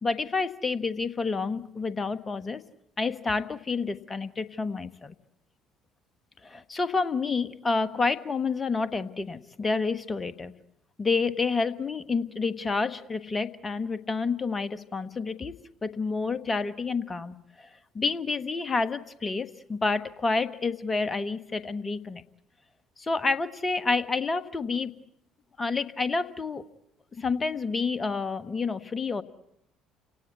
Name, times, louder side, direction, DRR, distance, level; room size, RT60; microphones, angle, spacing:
voice 1, 0.0-2.6 3.0-5.1 6.4-10.5 11.0-15.5 15.8-17.7 17.9-22.2 23.0-24.9 25.6-26.6 27.1-29.2, left 4 dB, 25° left, 13 dB, 1.4 m, -29 dB
29.5 x 18.0 x 8.4 m, 0.81 s
figure-of-eight pair, 50°, 0 cm